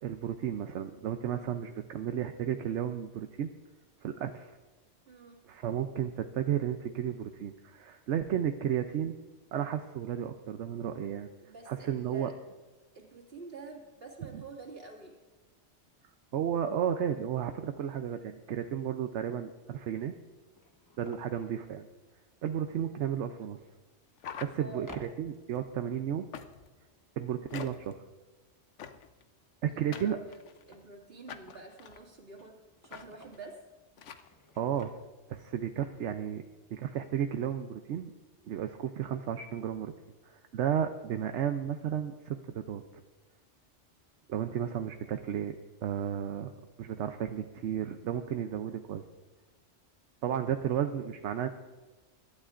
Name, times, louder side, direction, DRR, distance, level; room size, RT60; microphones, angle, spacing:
voice 1, 0.0-3.5 4.0-4.5 5.5-9.2 9.5-11.3 11.7-12.3 14.3-14.4 16.3-20.1 21.0-21.9 22.4-23.6 24.4-26.3 27.2-28.0 29.6-30.2 34.6-34.9 35.3-36.4 36.7-38.1 38.5-39.9 40.2-43.0 44.3-45.6 45.8-46.5 46.8-49.0 50.2-51.5, right 9 dB, 80° right, 7 dB, 1.0 m, -33 dB
voice 2, 5.1-5.4 11.4-12.3 12.9-15.2 24.6-24.9 29.7-32.6 32.8-33.6, right 4 dB, 55° right, -2 dB, 2.5 m, -48 dB
sound 1, 19.6-19.7 20.3-21.4 23.4-23.5 24.8-25.9 29.9-31.7 32.1-33.5 34.1-35.4 35.8-35.9 36.1-36.3, left 1 dB, 20° left, 0.9 m, -54 dB
sound 2, 24.2-25.1 26.3-26.8 27.5-28.0 28.8-29.2 29.9-30.7 31.3-32.0 32.9-33.1 33.3-33.5 34.0-34.3, left 7 dB, 85° left, 1.1 m, -45 dB
23.5 x 12.0 x 2.5 m, 1.2 s
omnidirectional pair, 1.2 m